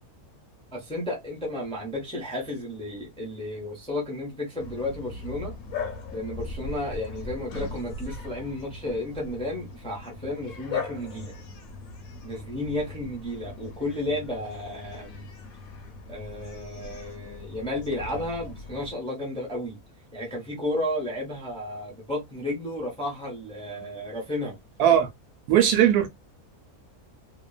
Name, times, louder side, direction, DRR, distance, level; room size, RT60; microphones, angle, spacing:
voice 1, 0.7-5.5 6.1-11.3 12.2-15.3 16.1-19.8 20.1-24.6, left 1 dB, 5° left, 0.6 m, -33 dB
Bark, 4.6-18.9, left 4 dB, 70° left, 1.1 m, -39 dB
voice 2, 25.5-26.1, right 10 dB, 80° right, 1.1 m, -18 dB
2.8 x 2.1 x 2.3 m
omnidirectional pair, 1.6 m